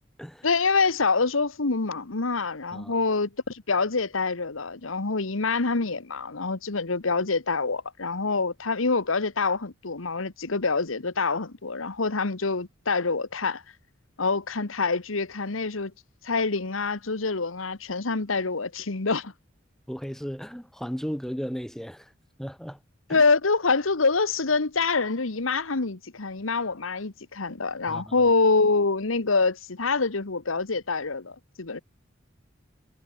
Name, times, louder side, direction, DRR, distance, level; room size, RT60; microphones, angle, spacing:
voice 1, 0.4-13.6 14.2-15.9 16.2-19.3 23.1-31.8, left 4 dB, 85° left, 1.4 m, -26 dB
voice 2, 19.9-22.1 22.4-22.8 23.1-23.2 27.9-28.2, equal, ahead, 3.8 m, -35 dB
head